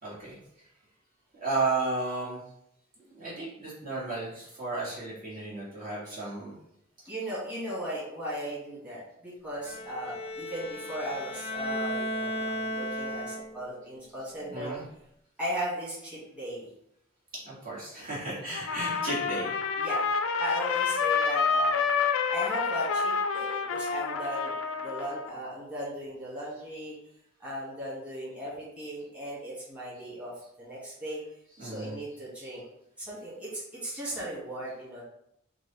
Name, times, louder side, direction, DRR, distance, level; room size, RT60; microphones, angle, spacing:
voice 1, 0.0-0.4 1.4-2.4 3.0-6.5 14.4-14.8 17.3-19.5 31.6-31.9, right 3 dB, 45° right, -7 dB, 1.7 m, -33 dB
voice 2, 7.1-14.7 15.4-16.7 18.1-18.4 19.8-20.1 20.4-21.8 22.3-26.9 27.4-30.3 30.6-31.2 31.6-32.6 33.0-35.0, equal, 5° right, -9 dB, 1.7 m, -37 dB
Bowed string instrument, 9.6-13.8, left 1 dB, 30° left, 0.6 m, -35 dB
Trumpet, 18.5-25.3, left 5 dB, 85° left, 0.4 m, -28 dB
4.7 x 2.5 x 4.0 m, 0.77 s
head